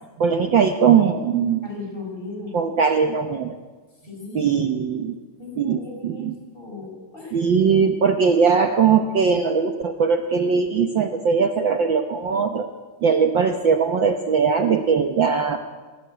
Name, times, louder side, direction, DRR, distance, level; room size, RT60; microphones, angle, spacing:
voice 1, 0.2-1.7 2.5-3.5 4.3-5.1 5.6-6.3 7.3-12.7 13.0-15.6, right 6 dB, 60° right, 6 dB, 1.2 m, -20 dB
voice 2, 1.6-2.5 4.0-5.0 5.4-6.3 6.5-7.5, left 3 dB, 15° left, 0 dB, 6.3 m, -36 dB
24.5 x 18.0 x 8.0 m, 1.4 s
omnidirectional pair, 3.3 m